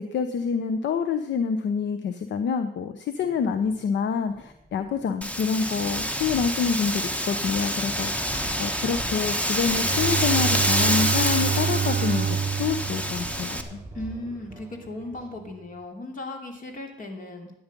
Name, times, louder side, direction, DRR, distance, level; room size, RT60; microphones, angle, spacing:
voice 1, 0.0-8.3 8.6-12.3 12.6-13.8, left 6 dB, 65° left, 9 dB, 0.8 m, -27 dB
sound 1, 3.2-15.4, right 1 dB, 10° right, 6.4 m, -46 dB
Wind, 5.2-13.6, equal, 5° left, 1.3 m, -27 dB
Bowed string instrument, 9.7-14.2, right 8 dB, 45° right, 0.6 m, -28 dB
voice 2, 13.9-17.5, left 1 dB, 45° left, 3 dB, 2.8 m, -36 dB
13.0 x 9.6 x 5.3 m, 0.83 s
cardioid pair, 90°, 20 cm